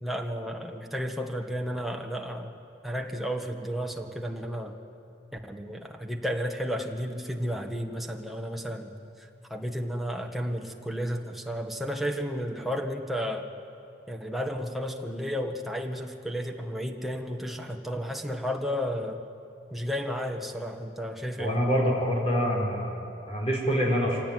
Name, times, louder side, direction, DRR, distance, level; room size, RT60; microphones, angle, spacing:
voice 1, 0.0-2.6 2.8-4.7 5.4-8.9 9.5-13.5 14.1-19.2 19.7-21.6, equal, ahead, 2 dB, 1.5 m, -32 dB
voice 2, 21.4-22.9 23.3-24.2, equal, 35° left, -3 dB, 5.4 m, -25 dB
25.5 x 17.0 x 9.3 m, 2.7 s
head